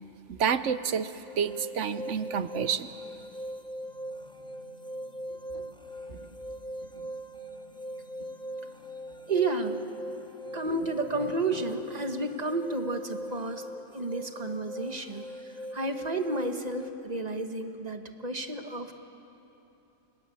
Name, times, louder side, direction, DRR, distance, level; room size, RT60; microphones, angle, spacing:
voice 1, 0.3-2.9, right 7 dB, 60° right, 13 dB, 1.1 m, -29 dB
sound 1, 1.3-16.9, equal, 5° left, 0.7 m, -41 dB
sound 2, 3.7-12.5, right 1 dB, 35° left, 4.8 m, -59 dB
voice 2, 9.3-9.8 10.5-13.6 13.9-18.9, right 2 dB, 30° right, 6 dB, 1.4 m, -32 dB
30.0 x 20.0 x 8.4 m, 3.0 s
omnidirectional pair, 1.5 m